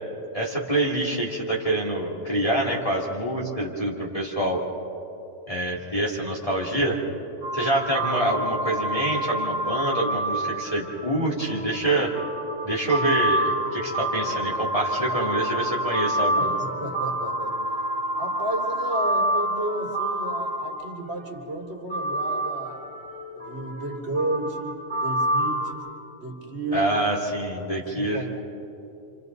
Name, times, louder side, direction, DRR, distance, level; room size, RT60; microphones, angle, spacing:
voice 1, 0.3-4.6 5.5-7.0 7.5-12.1 12.6-16.6 26.7-28.2, right 1 dB, 25° left, -5 dB, 2.8 m, -26 dB
sound 1, 7.4-21.2 21.9-25.7, right 1 dB, 60° left, 4.7 m, -28 dB
voice 2, 16.4-17.6 18.2-22.8 23.3-25.9 26.2-27.0 27.9-28.3, right 1 dB, 50° right, 0 dB, 3.1 m, -32 dB
29.5 x 27.0 x 4.0 m, 2.9 s
omnidirectional pair, 1.4 m